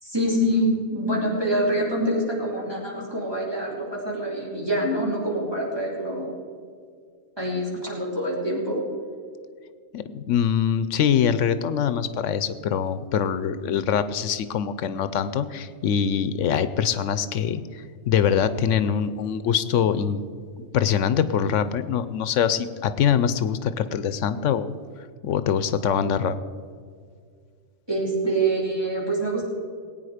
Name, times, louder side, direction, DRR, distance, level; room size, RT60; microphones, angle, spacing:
voice 1, 0.0-6.3 7.4-8.8 27.9-29.5, right 1 dB, 20° right, -4 dB, 3.6 m, -25 dB
voice 2, 9.9-20.2 20.6-24.7 25.2-26.4, left 8 dB, 85° left, 13 dB, 1.0 m, -24 dB
19.5 x 9.1 x 5.0 m, 2.1 s
omnidirectional pair, 1.3 m